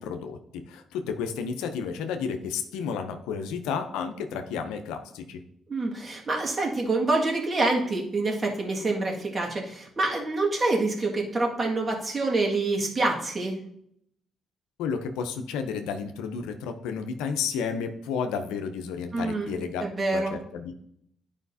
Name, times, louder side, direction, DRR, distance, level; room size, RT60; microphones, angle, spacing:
voice 1, 0.0-5.4 14.8-20.8, left 6 dB, 85° left, 7 dB, 0.6 m, -32 dB
voice 2, 5.7-13.6 19.1-19.5 19.8-20.4, right 2 dB, 40° right, -1 dB, 1.9 m, -26 dB
11.0 x 5.0 x 2.7 m, 0.71 s
hypercardioid pair, 50°, 0 cm